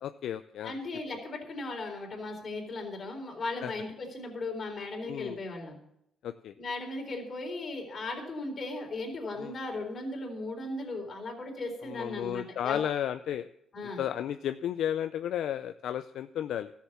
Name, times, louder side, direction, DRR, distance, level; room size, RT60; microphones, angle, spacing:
voice 1, 0.0-0.8 3.6-3.7 5.0-5.4 6.2-6.5 9.4-9.5 11.8-13.5 14.0-16.7, left 10 dB, 75° left, 11 dB, 0.4 m, -33 dB
voice 2, 0.6-5.8 6.6-12.8 13.7-14.0, left 2 dB, 45° left, 1 dB, 3.9 m, -37 dB
13.0 x 7.3 x 7.2 m, 0.76 s
cardioid pair, 90°, 0 cm